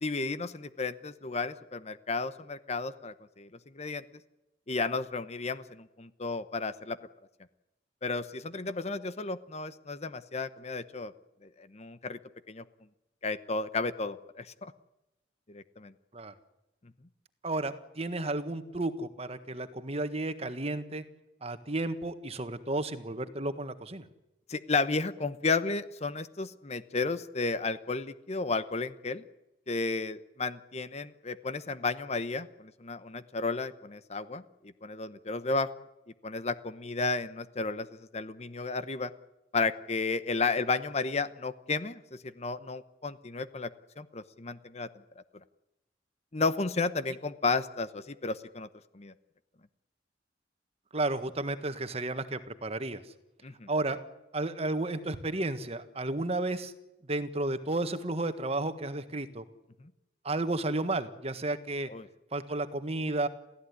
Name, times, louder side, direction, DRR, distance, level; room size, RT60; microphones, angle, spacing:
voice 1, 0.0-3.5 3.7-4.0 4.7-7.0 8.0-11.1 11.6-12.2 12.5-12.6 13.2-14.7 15.5-15.9 24.5-29.2 29.7-34.4 34.8-35.7 36.2-39.1 39.5-43.7 44.0-44.9 46.3-48.7 48.9-49.1 53.4-53.7 61.9-62.1, left 3 dB, 35° left, 13 dB, 0.9 m, -33 dB
voice 2, 17.4-21.0 21.4-24.0 50.9-53.0 53.7-54.0 54.3-56.7 57.1-59.4 60.2-61.9 62.3-63.3, right 2 dB, 35° right, 10 dB, 1.6 m, -32 dB
28.5 x 16.0 x 9.7 m, 0.95 s
head